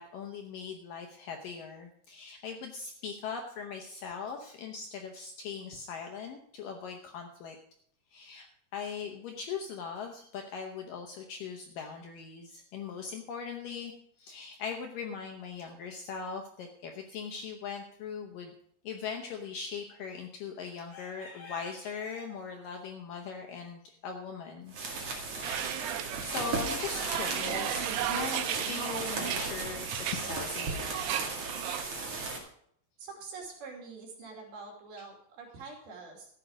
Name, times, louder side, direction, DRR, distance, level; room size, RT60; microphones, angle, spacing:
voice 1, 0.0-7.6 8.1-8.5 8.7-18.5 18.8-24.7 25.4-31.4 34.2-34.3, left 6 dB, 70° left, 3 dB, 2.1 m, -40 dB
sound 1, 24.7-32.4, right 3 dB, 45° right, 2.7 m, -36 dB
sound 2, 25.4-31.8, right 12 dB, 80° right, 2.6 m, -36 dB
voice 2, 33.0-36.3, right 4 dB, 65° right, 0 dB, 4.4 m, -45 dB
14.0 x 8.8 x 5.2 m, 0.66 s
omnidirectional pair, 5.0 m